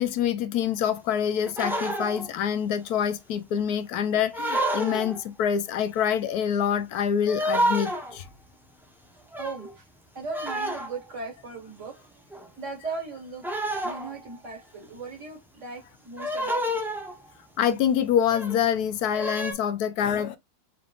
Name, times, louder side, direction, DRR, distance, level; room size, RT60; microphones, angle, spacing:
voice 1, 0.0-8.3 17.6-20.4, left 8 dB, 70° left, 1.1 m, -26 dB
sound 1, 1.5-2.3 4.3-5.2 7.3-8.2 9.3-9.7 10.3-11.1 12.3-12.5 13.4-14.4 16.2-17.3 18.2-18.6 19.1-19.5, equal, 5° right, 0.4 m, -29 dB
voice 2, 4.6-5.2 9.1-9.9 10.1-13.5 13.8-16.8, right 4 dB, 45° right, 1.7 m, -39 dB
4.8 x 3.5 x 2.4 m
omnidirectional pair, 1.8 m